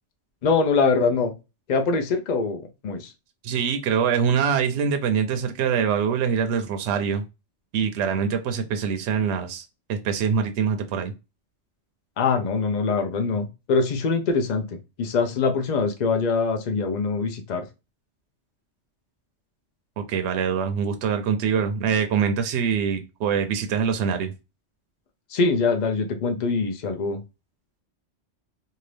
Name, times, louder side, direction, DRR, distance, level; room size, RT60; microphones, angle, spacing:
voice 1, 0.4-1.3 1.7-3.1 12.2-14.7 15.0-17.6 25.3-27.2, left 4 dB, 50° left, 0.6 m, -23 dB
voice 2, 3.4-7.2 7.7-11.1 20.0-24.3, right 6 dB, 75° right, 0.8 m, -24 dB
2.7 x 2.5 x 3.2 m
omnidirectional pair, 1.2 m